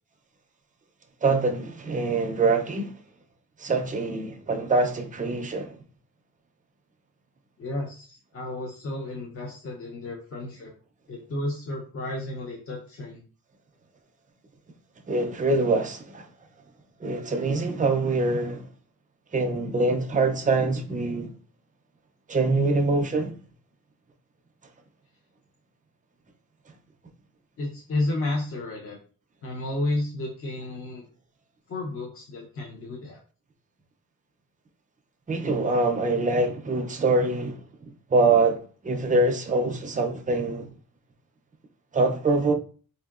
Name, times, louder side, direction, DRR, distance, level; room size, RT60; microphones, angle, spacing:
voice 1, 1.2-2.9 3.6-5.8 15.1-16.3 17.0-18.7 19.3-21.3 22.3-23.3 35.3-37.6 38.1-40.7 41.9-42.5, right 3 dB, 25° right, 0.4 m, -24 dB
voice 2, 7.6-10.7 11.1-13.2 27.6-29.0 29.4-31.1 31.7-33.2, left 2 dB, 40° left, 0.6 m, -32 dB
4.4 x 2.7 x 2.3 m
wide cardioid pair, 170°, 34 cm